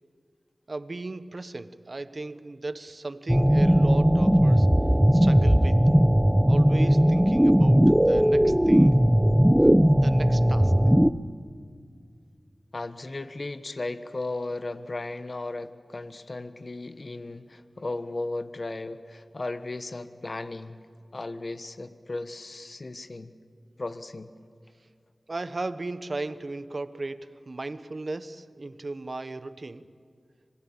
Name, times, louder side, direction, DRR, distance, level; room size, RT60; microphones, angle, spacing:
voice 1, 0.7-5.9 6.2-9.0 9.6-10.7 25.3-29.9, right 2 dB, 55° right, 13 dB, 1.1 m, -36 dB
sound 1, 3.3-11.1, equal, 10° right, 0.9 m, -19 dB
voice 2, 12.7-20.8 21.1-23.3 23.8-24.3, left 2 dB, 55° left, 11 dB, 1.4 m, -35 dB
26.5 x 21.0 x 8.7 m, 2.2 s
cardioid pair, 40°, 0 cm